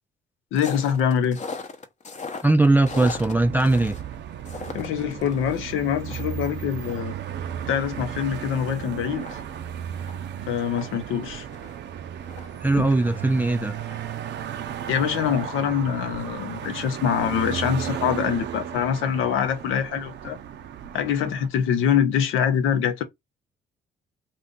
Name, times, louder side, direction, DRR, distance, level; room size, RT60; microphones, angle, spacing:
voice 1, 0.5-1.4 4.7-7.1 7.7-9.4 10.5-11.4 12.8-12.9 14.9-20.4 20.9-23.0, left 8 dB, 90° left, 0.7 m, -24 dB
sound 1, 0.5-5.6 5.9-8.6 8.9-9.0 9.2-13.3 13.7-15.0 15.3-15.4, left 4 dB, 35° left, 0.7 m, -40 dB
voice 2, 2.4-3.9 12.6-13.7, right 2 dB, 10° right, 0.3 m, -20 dB
sound 2, 2.8-21.5, right 9 dB, 65° right, 0.5 m, -35 dB
2.6 x 2.5 x 3.6 m
cardioid pair, 90°, 20 cm